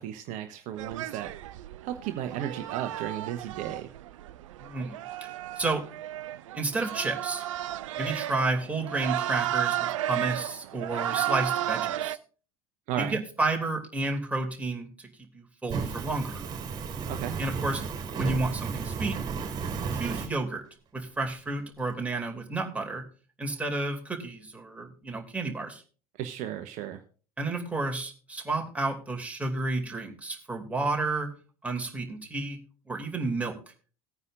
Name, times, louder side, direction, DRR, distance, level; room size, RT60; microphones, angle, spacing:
voice 1, 0.0-1.3 1.8-3.9 12.9-13.2 17.1-17.4 26.2-27.0, right 11 dB, 45° right, 7 dB, 1.0 m, -34 dB
sound 1, 0.8-12.2, right 13 dB, 60° right, 0.6 m, -33 dB
voice 2, 4.6-5.0 5.6-5.9 6.5-7.4 7.9-12.2 13.0-14.9 15.3-16.4 17.4-17.8 18.2-19.2 20.0-20.6 20.9-23.0 23.4-25.8 27.4-31.3 31.6-32.6 32.9-33.6, right 2 dB, 10° right, 2 dB, 2.6 m, -31 dB
Fire, 15.7-20.3, right 5 dB, 25° right, 3.6 m, -33 dB
18.5 x 9.5 x 2.5 m, 0.38 s
figure-of-eight pair, 75°, 18 cm